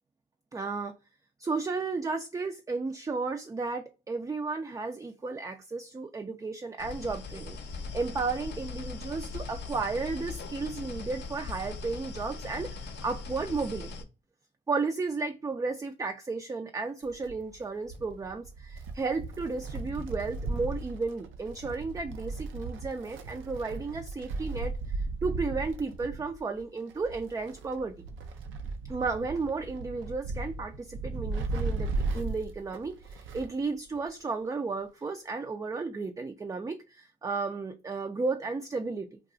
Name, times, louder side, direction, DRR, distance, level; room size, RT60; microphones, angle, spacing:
voice 1, 0.5-1.0 1.4-14.1 14.7-27.9 28.9-39.2, right 4 dB, 15° right, 0.3 m, -33 dB
sound 1, 6.8-14.0, left 4 dB, 60° left, 0.6 m, -40 dB
Wind, 17.0-33.6 33.9-34.0 35.0-35.1, right 3 dB, 80° right, 0.5 m, -36 dB
2.3 x 2.3 x 3.8 m
supercardioid pair, 60°, 20 cm